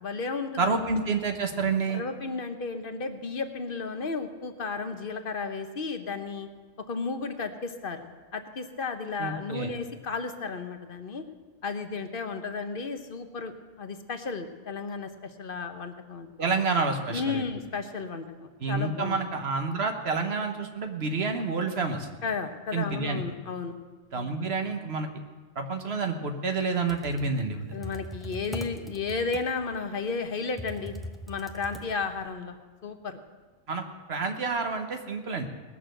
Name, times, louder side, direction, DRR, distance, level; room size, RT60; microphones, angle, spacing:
voice 1, 0.0-0.7 1.9-6.5 6.9-8.1 8.3-11.2 11.6-13.5 13.8-16.3 17.1-18.3 18.7-19.2 22.2-23.7 24.1-24.3 27.7-30.9 31.3-32.5 32.8-33.2, left 4 dB, 50° left, 7 dB, 1.1 m, -33 dB
voice 2, 0.6-2.0 9.2-9.7 16.4-17.4 18.6-22.1 22.7-23.2 24.1-25.1 25.5-27.8 33.7-35.5, right 4 dB, 55° right, 5 dB, 1.4 m, -29 dB
Computer keyboard, 26.7-32.3, left 1 dB, ahead, 0.7 m, -41 dB
19.0 x 6.6 x 7.7 m, 1.3 s
omnidirectional pair, 1.3 m